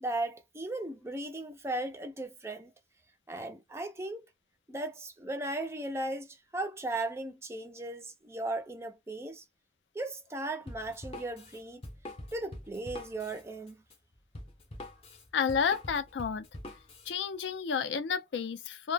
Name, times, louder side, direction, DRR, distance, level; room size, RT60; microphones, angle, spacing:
voice 1, 0.0-2.7 3.3-4.3 4.7-9.4 9.9-11.8 12.3-13.8, right 2 dB, 15° right, 0.3 m, -37 dB
Drum kit, 10.7-17.1, left 1 dB, 35° left, 0.5 m, -45 dB
voice 2, 15.3-16.5 17.1-18.9, left 6 dB, 80° left, 0.4 m, -31 dB
2.0 x 2.0 x 3.2 m
head